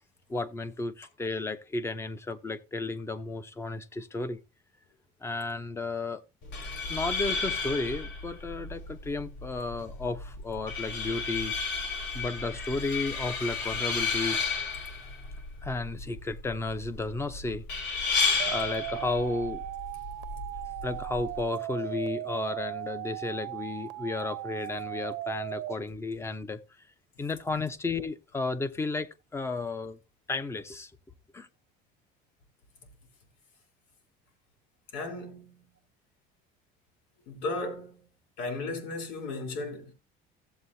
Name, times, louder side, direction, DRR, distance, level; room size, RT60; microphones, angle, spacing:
voice 1, 0.3-4.4 5.2-6.2 6.9-11.6 12.1-14.4 15.6-17.6 17.9-18.2 18.5-19.6 20.8-26.6 27.2-30.0 30.3-30.9 31.3-31.5, left 3 dB, 15° left, 0.7 m, -33 dB
sound 1, 6.4-21.4, left 4 dB, 70° left, 3.9 m, -33 dB
sound 2, 18.4-25.7, right 16 dB, 85° right, 0.9 m, -37 dB
voice 2, 34.9-35.7 37.3-38.0 38.4-39.9, left 2 dB, 90° left, 3.7 m, -35 dB
15.5 x 7.7 x 2.7 m
cardioid pair, 155°, 19 cm